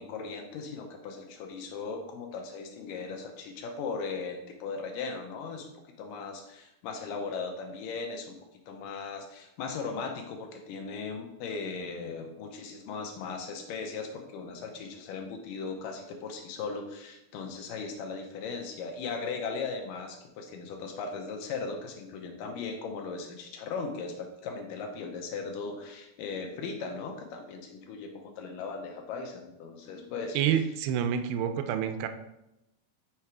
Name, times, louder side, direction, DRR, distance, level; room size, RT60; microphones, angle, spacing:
voice 1, 0.0-5.7 6.0-8.3 8.7-30.4, left 4 dB, 80° left, 4 dB, 2.3 m, -38 dB
voice 2, 30.3-32.1, right 9 dB, 85° right, 8 dB, 2.3 m, -28 dB
5.8 x 4.4 x 4.7 m, 0.90 s
omnidirectional pair, 4.1 m